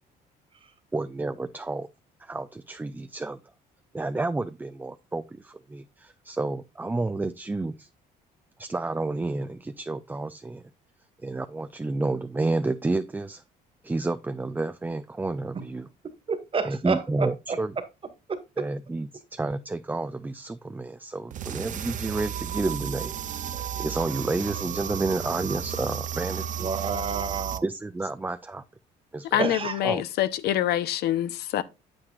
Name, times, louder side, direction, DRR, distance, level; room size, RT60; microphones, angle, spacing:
voice 1, 0.9-1.9 2.2-3.4 3.9-7.9 8.6-10.6 11.2-13.4 13.8-15.9 16.6-17.8 18.6-23.2 23.8-26.7 27.6-28.6 29.1-29.5 29.8-30.0, right 2 dB, 10° right, 0.5 m, -30 dB
voice 2, 16.3-17.3 18.3-18.4 26.6-27.6 29.4-29.8, right 5 dB, 30° right, 1.8 m, -29 dB
sound 1, 21.3-27.6, right 9 dB, 50° right, 0.7 m, -33 dB
voice 3, 29.3-31.6, left 12 dB, 75° left, 0.8 m, -25 dB
8.8 x 7.9 x 2.4 m
cardioid pair, 110°, 17 cm